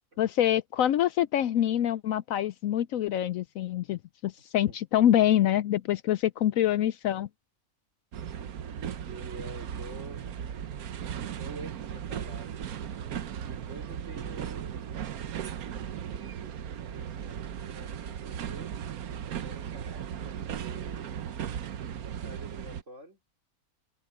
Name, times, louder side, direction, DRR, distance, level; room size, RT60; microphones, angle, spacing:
voice 1, 0.2-7.3, left 11 dB, 70° left, 0.9 m, -25 dB
sound 1, 8.1-22.8, right 9 dB, 75° right, 1.4 m, -37 dB
voice 2, 9.1-10.3 11.4-12.5 13.4-14.8 15.8-16.5 16.9-18.8 19.2-21.2 22.2-23.2, right 2 dB, 50° right, 3.8 m, -47 dB
omnidirectional pair, 1.6 m